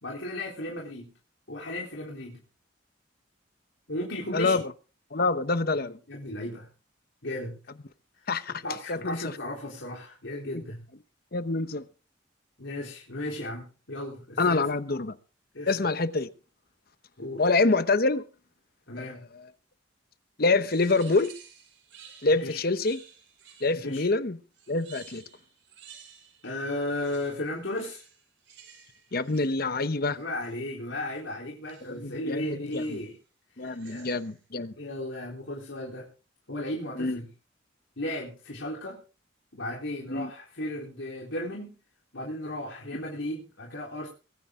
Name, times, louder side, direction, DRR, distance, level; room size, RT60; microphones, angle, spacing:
voice 1, 0.0-1.1 1.5-2.4 3.9-4.6 5.8-6.7 7.2-7.6 8.2-8.3 8.6-10.8 12.6-14.7 15.5-15.7 17.2-17.4 18.9-19.2 22.3-22.6 23.8-24.1 26.4-28.0 30.2-33.1 33.6-34.1 34.8-36.1 36.5-37.3 38.0-39.0 39.5-41.7 42.1-44.1, left 1 dB, 70° left, 3.8 m, -35 dB
voice 2, 4.3-4.6 5.1-6.0 8.3-8.6 8.9-9.3 11.3-11.8 14.4-15.1 15.7-16.3 17.4-18.2 19.0-19.4 20.4-21.3 22.2-23.0 23.6-24.4 24.7-25.2 29.1-30.2 31.8-33.0 33.6-34.7 37.0-37.2 40.1-40.3, left 3 dB, 50° left, 1.0 m, -26 dB
sound 1, 20.6-24.0 24.5-26.5 26.8-30.7 31.7-32.1 32.7-33.2 33.6-34.4, right 7 dB, 70° right, 6.0 m, -53 dB
23.5 x 10.0 x 3.8 m
head